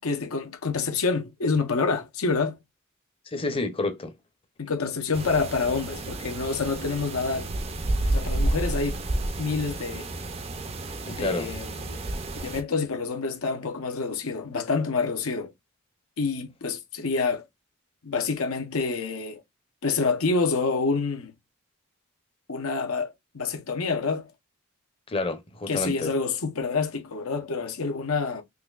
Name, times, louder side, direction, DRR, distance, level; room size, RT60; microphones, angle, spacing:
voice 1, 0.0-2.6 4.6-7.5 8.1-9.0 9.4-10.1 11.1-12.0 12.4-15.5 16.2-17.4 18.0-19.4 19.8-21.3 22.5-24.3 25.7-28.4, left 4 dB, 85° left, 0.8 m, -27 dB
voice 2, 3.3-4.1 11.1-11.5 25.1-26.1, left 2 dB, 25° left, 0.6 m, -29 dB
sound 1, 5.1-12.6, right 1 dB, 30° right, 0.4 m, -30 dB
3.9 x 2.9 x 2.4 m
head